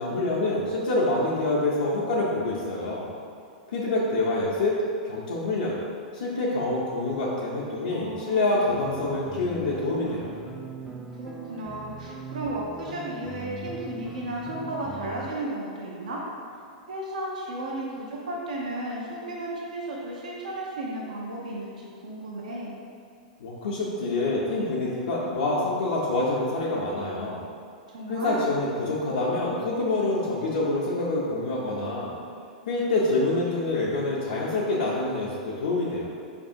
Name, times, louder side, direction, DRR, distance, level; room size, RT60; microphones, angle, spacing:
voice 1, 0.0-3.1 3.7-5.8 6.1-10.3 23.4-27.4 28.1-32.2 32.7-36.1, left 2 dB, 75° left, -7 dB, 0.5 m, -26 dB
voice 2, 7.9-8.6 11.1-16.2 16.9-22.8 27.9-28.5, right 1 dB, 80° right, -3 dB, 0.6 m, -34 dB
sound 1, 8.7-15.3, right 4 dB, 10° right, 0.3 m, -40 dB
4.7 x 2.6 x 2.5 m, 2.3 s
hypercardioid pair, 110°, 4 cm